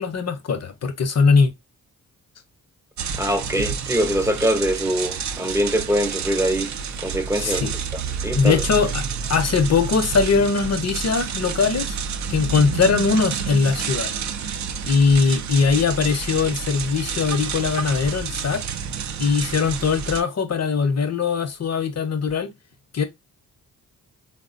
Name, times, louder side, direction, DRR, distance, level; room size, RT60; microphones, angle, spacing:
voice 1, 0.0-1.5 7.4-7.7 8.3-12.0 12.3-14.1 14.9-18.6 19.2-22.5 22.9-23.0, left 5 dB, 40° left, 0.8 m, -21 dB
sound 1, 3.0-20.2, right 6 dB, 45° right, 0.5 m, -29 dB
voice 2, 3.1-6.7 7.0-7.7 8.2-8.6, equal, 10° right, 0.6 m, -23 dB
3.5 x 2.1 x 2.5 m
supercardioid pair, 50°, 39 cm